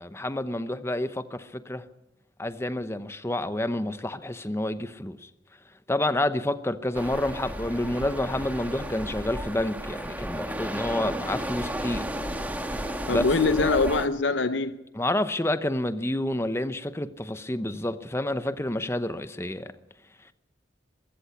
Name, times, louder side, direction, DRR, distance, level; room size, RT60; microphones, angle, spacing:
voice 1, 0.0-1.8 2.4-5.3 5.9-12.1 12.7-12.8 13.1-13.5 15.0-19.7, left 1 dB, 15° left, 0.8 m, -29 dB
sound 1, 6.9-14.1, equal, 10° right, 1.5 m, -33 dB
voice 2, 13.1-14.8, left 3 dB, 70° left, 0.7 m, -23 dB
23.0 x 14.0 x 8.4 m
head